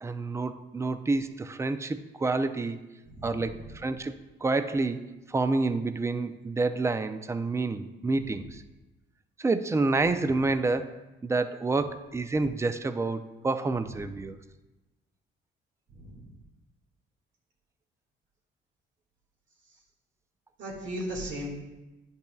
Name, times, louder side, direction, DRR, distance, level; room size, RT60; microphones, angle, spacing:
voice 1, 0.0-2.8 3.2-4.1 4.4-5.0 5.3-8.6 9.4-14.4, right 3 dB, 15° right, 10 dB, 0.4 m, -28 dB
voice 2, 3.1-3.6 8.2-8.4 14.0-14.1 15.9-16.3 20.6-21.5, equal, 70° right, -2 dB, 1.9 m, -37 dB
10.0 x 5.4 x 2.3 m, 1.1 s
cardioid pair, 90°, 20 cm